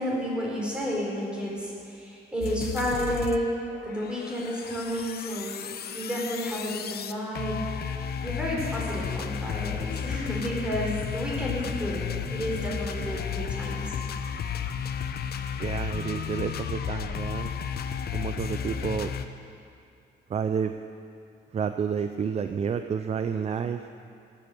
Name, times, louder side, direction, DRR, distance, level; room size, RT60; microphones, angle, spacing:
voice 1, 0.0-3.5 3.8-12.0 12.3-13.9, equal, 5° right, -4 dB, 4.3 m, -31 dB
sound 1, 2.4-3.4 3.7-19.3, left 7 dB, 55° left, 0.8 m, -33 dB
voice 2, 15.6-17.5 18.1-19.1 20.3-20.7 21.5-23.9, right 7 dB, 35° right, 8 dB, 0.5 m, -30 dB
18.5 x 8.6 x 7.7 m, 2.5 s
cardioid pair, 140°, 19 cm